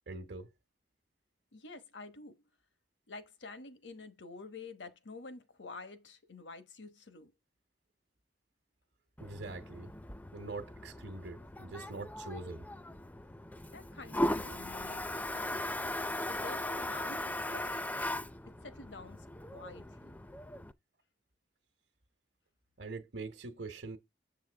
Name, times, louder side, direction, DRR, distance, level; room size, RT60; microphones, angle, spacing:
voice 1, 0.1-0.5 9.2-9.9 10.3-12.7 22.8-24.0, right 3 dB, 65° right, 1.1 m, -43 dB
voice 2, 1.5-2.4 3.1-7.3 13.7-15.7 16.3-17.8 18.5-20.2, left 3 dB, 80° left, 1.1 m, -49 dB
Toilet flush, 9.2-20.7, left 1 dB, 10° left, 0.4 m, -38 dB
7.5 x 7.3 x 3.4 m
head